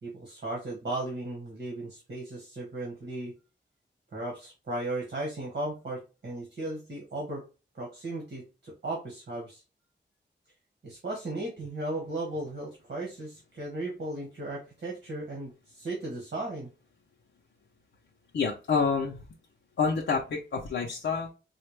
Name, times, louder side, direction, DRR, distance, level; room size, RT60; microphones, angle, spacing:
voice 1, 0.0-3.3 4.1-7.4 7.7-9.6 10.8-16.7, right 2 dB, 60° right, -2 dB, 1.4 m, -36 dB
voice 2, 18.3-19.2 19.8-21.3, left 5 dB, 80° left, -1 dB, 0.7 m, -28 dB
4.2 x 2.4 x 3.2 m, 0.31 s
wide cardioid pair, 170°, 19 cm